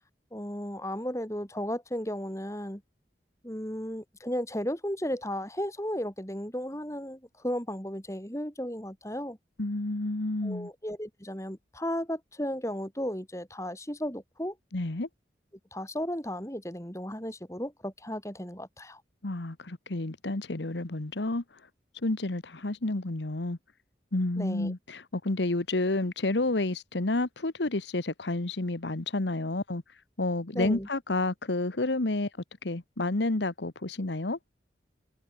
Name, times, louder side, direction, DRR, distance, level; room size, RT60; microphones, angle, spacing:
voice 1, 0.3-2.8 3.4-9.4 10.4-14.5 15.7-19.0 24.4-24.7 30.5-30.9, equal, 15° left, 4.6 m, -34 dB
voice 2, 9.6-10.7 14.7-15.1 19.2-21.4 22.0-23.6 24.1-29.8 30.2-32.3 32.6-34.4, left 2 dB, 85° left, 1.4 m, -30 dB
head